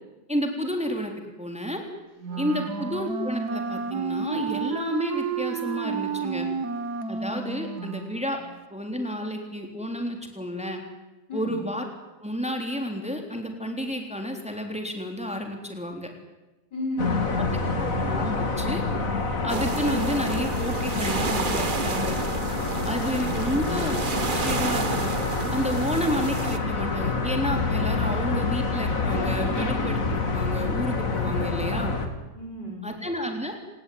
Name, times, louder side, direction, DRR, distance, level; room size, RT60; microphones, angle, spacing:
voice 1, 0.3-1.1 1.4-1.8 2.4-6.5 7.1-8.4 8.7-10.8 11.3-11.8 12.2-16.1 17.4-18.8 19.4-22.1 22.8-24.0 24.3-25.1 25.5-31.9 32.8-33.5, equal, 5° right, 3 dB, 3.7 m, -31 dB
Wind instrument woodwind instrument, 2.2-8.4, right 6 dB, 70° right, 2.1 m, -31 dB
voice 2, 2.3-2.6 11.3-11.6 16.7-17.9 22.9-23.7 32.3-32.9, equal, 80° left, 3 dB, 6.3 m, -34 dB
sound 1, 17.0-32.1, left 3 dB, 50° left, 2.9 m, -27 dB
sound 2, 19.5-26.6, right 4 dB, 30° right, 1.4 m, -31 dB
27.5 x 19.0 x 9.6 m, 1.1 s
omnidirectional pair, 1.8 m